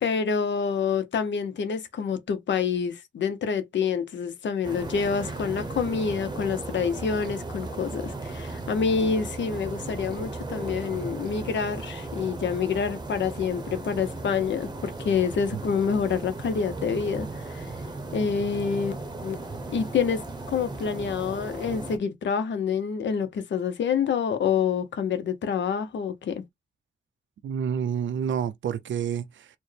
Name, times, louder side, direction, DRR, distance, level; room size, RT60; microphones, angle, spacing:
voice 1, 0.0-17.7 18.1-18.9 19.2-19.3 19.7-20.2 20.5-26.4, left 6 dB, 75° left, 0.7 m, -27 dB
sound 1, 4.6-22.0, right 2 dB, 20° right, 0.7 m, -36 dB
voice 2, 27.4-29.5, right 8 dB, 90° right, 0.5 m, -29 dB
4.3 x 2.1 x 3.2 m
wide cardioid pair, 145°, 19 cm